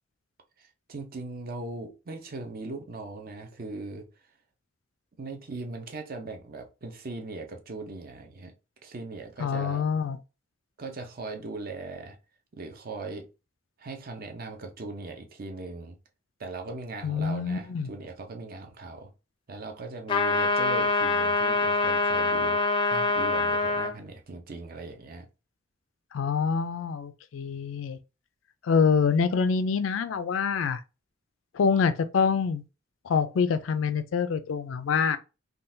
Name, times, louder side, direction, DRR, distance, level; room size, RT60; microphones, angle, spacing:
voice 1, 0.6-4.1 5.2-8.5 8.8-9.8 10.8-12.2 12.5-13.3 13.8-16.0 16.4-19.1 19.5-25.3, right 3 dB, 50° right, 0.6 m, -39 dB
voice 2, 9.4-10.2 17.0-17.9 26.1-28.0 28.6-30.8 31.5-32.6 33.0-35.2, left 5 dB, 85° left, 0.4 m, -26 dB
sound 1, 20.1-23.9, left 3 dB, 25° left, 0.4 m, -25 dB
3.7 x 2.3 x 2.6 m
head